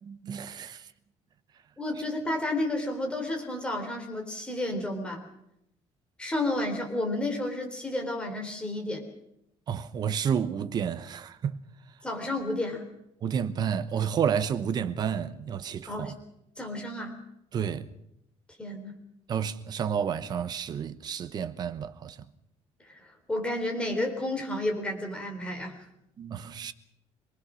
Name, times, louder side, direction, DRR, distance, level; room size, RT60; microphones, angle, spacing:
voice 1, 0.0-0.9 9.7-11.6 13.2-16.1 17.5-17.9 19.3-22.2 26.2-26.7, right 7 dB, 35° right, 1.0 m, -30 dB
voice 2, 1.8-5.3 6.2-9.1 12.0-12.9 15.9-16.1 16.6-17.2 18.6-18.9 22.9-25.8, left 1 dB, 10° left, 3.8 m, -31 dB
26.0 x 19.5 x 6.3 m
cardioid pair, 165°, 11 cm